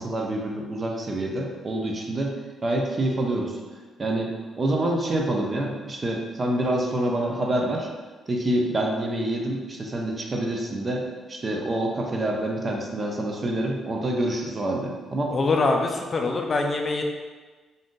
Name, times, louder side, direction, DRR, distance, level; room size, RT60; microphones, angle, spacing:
voice 1, 0.0-2.4 2.6-3.6 4.0-7.9 8.3-15.4, right 1 dB, 30° right, 0 dB, 0.5 m, -27 dB
voice 2, 15.3-17.0, left 3 dB, 40° left, 3 dB, 0.4 m, -24 dB
2.6 x 2.3 x 3.6 m, 1.3 s
cardioid pair, 90°, 0 cm